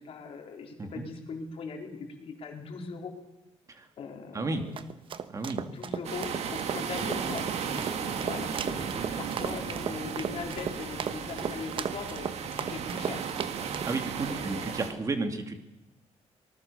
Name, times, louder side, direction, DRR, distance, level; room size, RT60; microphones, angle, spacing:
voice 1, 0.0-3.1 4.0-4.8 5.6-13.3 14.3-14.7, left 5 dB, 55° left, 3 dB, 4.0 m, -40 dB
voice 2, 4.3-4.6 5.3-5.6 13.8-15.6, right 3 dB, 30° right, 7 dB, 2.4 m, -32 dB
sound 1, 4.5-13.9, right 7 dB, 45° right, 1.1 m, -36 dB
sound 2, 6.0-14.9, right 6 dB, 65° right, 2.2 m, -35 dB
25.0 x 19.5 x 6.9 m, 1.0 s
cardioid pair, 155°, 12 cm